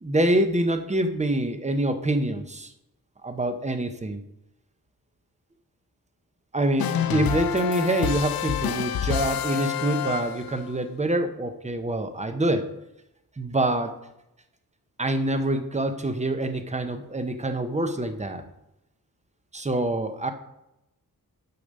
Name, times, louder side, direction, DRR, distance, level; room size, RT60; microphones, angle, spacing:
voice 1, 0.0-2.7 3.2-4.2 6.5-12.7 13.4-14.0 15.0-18.4 19.5-20.3, right 1 dB, 20° right, 8 dB, 0.7 m, -26 dB
sound 1, 6.8-10.7, left 9 dB, 75° left, 0.5 m, -28 dB
6.7 x 6.6 x 5.3 m, 0.87 s
wide cardioid pair, 120°, 36 cm